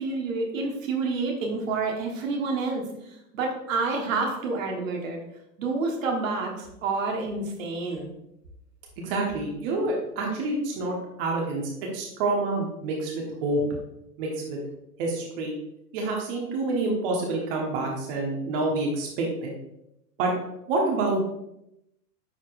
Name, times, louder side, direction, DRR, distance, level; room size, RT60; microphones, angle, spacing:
voice 1, 0.0-2.8 3.3-5.2 5.6-8.1, right 3 dB, 50° right, 1 dB, 1.5 m, -28 dB
voice 2, 9.0-13.6 14.2-14.6 15.0-15.5 15.9-19.5 20.2-20.3 20.7-21.2, right 2 dB, 35° right, 0 dB, 1.3 m, -27 dB
9.8 x 4.3 x 2.5 m, 0.84 s
figure-of-eight pair, 100°, 49 cm